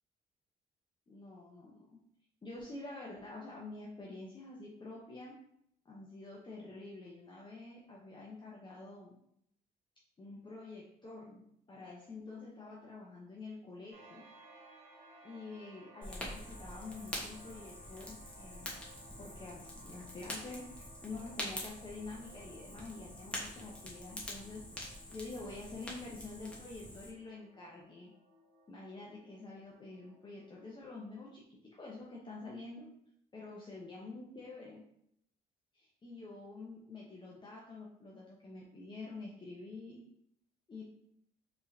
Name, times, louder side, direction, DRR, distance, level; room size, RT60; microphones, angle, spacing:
voice 1, 1.1-2.0 2.4-5.3 5.8-9.2 10.2-14.3 15.2-18.8 19.2-28.1 28.7-32.9 33.3-34.9 35.7-40.0 40.7-40.9, left 3 dB, 30° left, -4 dB, 0.8 m, -48 dB
sound 1, 13.9-31.1, right 2 dB, 85° right, 1.5 m, -60 dB
Fire, 16.0-27.1, left 1 dB, 5° left, 1.2 m, -45 dB
4.5 x 3.3 x 2.7 m, 0.72 s
cardioid pair, 90°, 16 cm